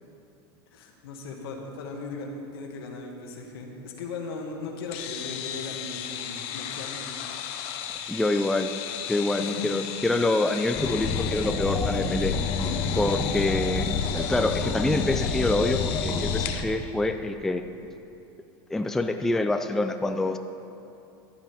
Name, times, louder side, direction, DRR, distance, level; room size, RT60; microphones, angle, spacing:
voice 1, 0.7-7.3 9.4-9.8, left 3 dB, 80° left, 1 dB, 1.8 m, -38 dB
sound 1, 4.9-16.6, left 9 dB, 55° left, 0.9 m, -35 dB
voice 2, 8.1-8.7 9.1-12.3 13.0-17.6 18.7-20.4, left 2 dB, 5° left, 6 dB, 0.4 m, -26 dB
sound 2, 10.7-16.4, left 4 dB, 30° left, 1.1 m, -28 dB
14.5 x 10.0 x 3.5 m, 2.7 s
supercardioid pair, 135°, 12 cm